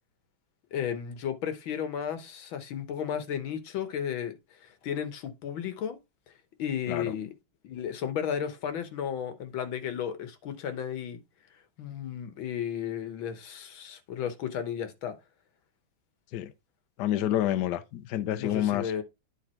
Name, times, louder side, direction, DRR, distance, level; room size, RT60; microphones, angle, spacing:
voice 1, 0.7-6.0 6.6-7.3 7.6-11.2 11.8-15.2 18.4-19.0, left 8 dB, 90° left, 1.9 m, -34 dB
voice 2, 17.0-18.9, left 12 dB, 70° left, 1.1 m, -28 dB
9.8 x 3.6 x 4.3 m
omnidirectional pair, 2.1 m